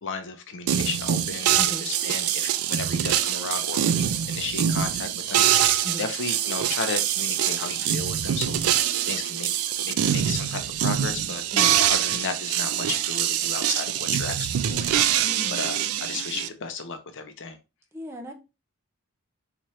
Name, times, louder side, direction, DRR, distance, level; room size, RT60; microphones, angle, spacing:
voice 1, 0.0-1.5 1.8-8.6 9.1-11.4 11.9-15.2 15.5-17.6, left 4 dB, 60° left, 0.6 m, -34 dB
sound 1, 0.7-16.5, right 10 dB, 75° right, 0.3 m, -24 dB
voice 2, 1.6-1.9 5.8-6.1 11.5-11.8 15.2-15.7 17.9-18.3, equal, 10° right, 0.5 m, -36 dB
4.2 x 2.5 x 3.0 m
head